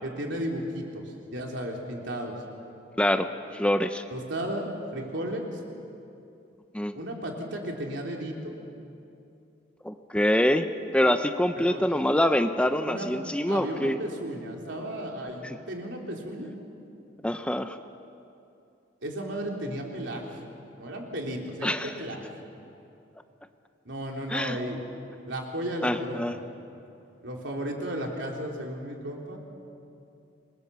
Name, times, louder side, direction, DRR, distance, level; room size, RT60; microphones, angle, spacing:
voice 1, 0.0-2.3 4.1-5.6 6.9-8.5 11.6-11.9 12.8-13.1 13.5-16.5 19.0-20.4 20.8-22.3 23.9-24.8 25.3-26.4 27.2-29.4, right 1 dB, 70° right, 0 dB, 3.7 m, -34 dB
voice 2, 3.0-3.3 3.5-4.0 6.7-6.9 9.8-10.7 10.9-14.0 15.4-15.6 17.2-17.8 21.6-21.9 24.3-24.6 25.8-26.4, left 1 dB, 5° left, 8 dB, 0.7 m, -25 dB
27.5 x 21.5 x 7.0 m, 2.7 s
head